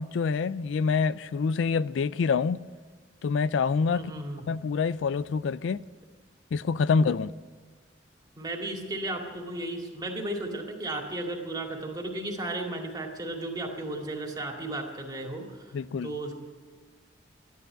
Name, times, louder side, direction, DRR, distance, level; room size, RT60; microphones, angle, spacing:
voice 1, 0.0-2.6 3.2-4.1 4.5-5.8 6.5-7.3 15.7-16.1, left 5 dB, 75° left, 0.4 m, -26 dB
voice 2, 3.9-4.4 8.4-15.6 16.0-16.3, right 2 dB, 20° right, 2.2 m, -34 dB
13.0 x 10.5 x 8.9 m
head